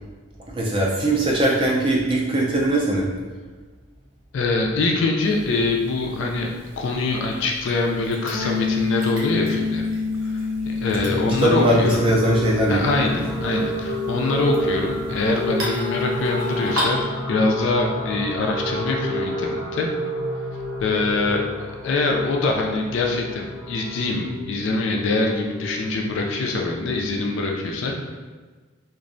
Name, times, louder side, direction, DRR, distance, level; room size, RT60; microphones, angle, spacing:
voice 1, 0.5-3.1 10.9-11.0 11.4-12.9, right 1 dB, 25° right, -4 dB, 0.3 m, -20 dB
voice 2, 4.3-6.5 6.8-9.9 10.2-12.0 12.7-19.9 20.8-28.1, left 3 dB, 60° left, 1 dB, 0.3 m, -24 dB
sound 1, 5.2-17.0, equal, 65° right, 0.6 m, -37 dB
sound 2, 8.3-18.0, left 4 dB, 85° right, 1.1 m, -29 dB
sound 3, 10.9-27.2, equal, 10° left, 0.7 m, -31 dB
2.5 x 2.0 x 2.5 m, 1.4 s
head